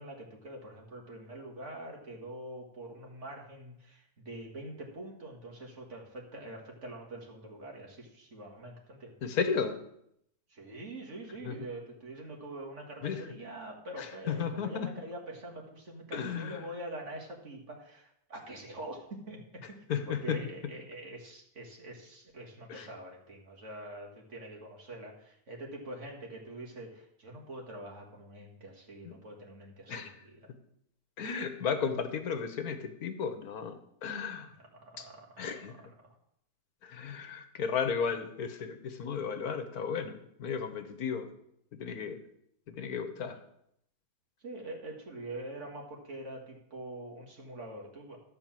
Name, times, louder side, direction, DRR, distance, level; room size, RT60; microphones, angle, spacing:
voice 1, 0.0-9.1 10.5-19.8 20.1-30.5 34.6-36.2 44.4-48.2, right 1 dB, 50° right, -1 dB, 2.2 m, -45 dB
voice 2, 9.2-9.8 11.4-11.7 13.0-13.2 14.0-14.9 16.1-16.6 19.9-20.4 22.7-22.9 29.0-29.1 29.9-30.1 31.2-34.5 35.0-35.1 35.4-35.7 36.8-41.3 41.7-42.2 42.7-43.4, left 6 dB, 75° left, 8 dB, 1.5 m, -34 dB
12.5 x 4.5 x 7.4 m, 0.74 s
omnidirectional pair, 1.6 m